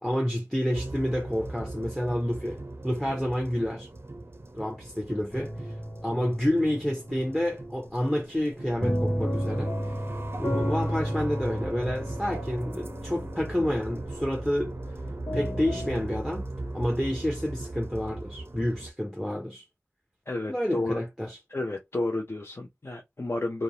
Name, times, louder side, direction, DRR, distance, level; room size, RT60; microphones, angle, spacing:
voice 1, 0.0-3.9 4.5-5.7 6.0-9.8 10.4-14.8 15.3-16.5 16.7-19.6 20.5-21.4, equal, 5° left, 0.6 m, -29 dB
sound 1, 0.7-18.9, right 2 dB, 45° right, 0.5 m, -39 dB
sound 2, 5.3-16.0, equal, 75° left, 1.2 m, -34 dB
voice 2, 20.3-21.0 21.5-23.6, left 2 dB, 50° left, 0.6 m, -31 dB
2.5 x 2.0 x 2.9 m
wide cardioid pair, 40°, 5 cm